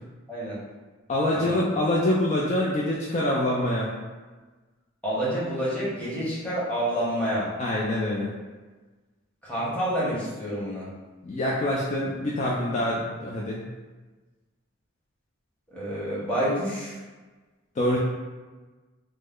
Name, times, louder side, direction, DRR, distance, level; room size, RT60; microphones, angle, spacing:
voice 1, 1.1-3.9 7.6-8.3 11.2-13.6 17.8-18.0, left 1 dB, 35° left, -5 dB, 0.3 m, -25 dB
voice 2, 5.0-7.5 9.4-10.9 15.7-17.0, equal, 5° left, -9 dB, 0.9 m, -28 dB
3.1 x 2.0 x 3.6 m, 1.3 s
head